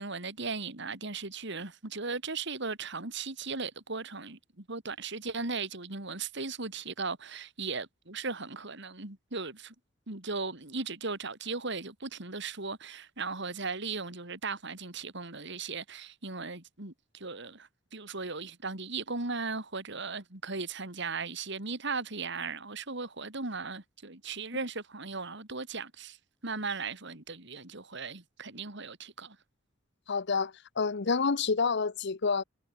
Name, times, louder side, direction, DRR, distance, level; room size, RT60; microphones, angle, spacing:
voice 1, 0.0-9.7 10.1-26.2 26.4-29.4, right 4 dB, 65° right, 3.6 m, -37 dB
voice 2, 30.1-32.4, left 5 dB, 60° left, 0.8 m, -28 dB
head